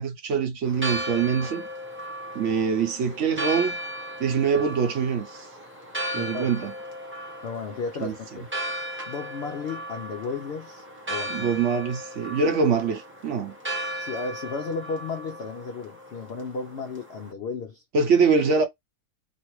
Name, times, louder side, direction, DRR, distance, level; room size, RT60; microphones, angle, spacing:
voice 1, 0.0-1.6 2.3-3.8 4.2-5.5 6.1-6.7 8.0-8.1 11.3-13.5 17.9-18.6, right 5 dB, 60° right, 0.9 m, -24 dB
Church bell, 0.7-17.3, right 1 dB, 10° right, 0.7 m, -36 dB
voice 2, 6.0-6.6 7.4-8.5 9.1-11.6 14.0-17.8, left 4 dB, 75° left, 0.5 m, -34 dB
2.9 x 2.6 x 3.0 m
omnidirectional pair, 1.6 m